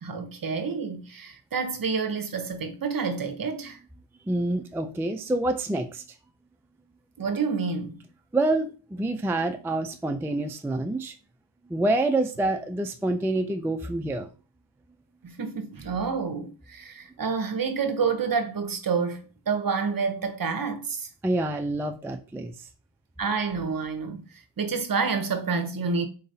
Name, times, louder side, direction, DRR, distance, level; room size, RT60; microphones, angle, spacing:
voice 1, 0.0-3.8 7.2-8.0 15.2-21.1 23.2-24.3 24.6-26.1, right 5 dB, 50° right, 0.8 m, -28 dB
voice 2, 4.3-6.0 8.3-11.1 11.7-14.3 21.2-22.5, right 2 dB, 5° right, 0.3 m, -27 dB
3.9 x 3.9 x 2.7 m
cardioid pair, 65°, 45 cm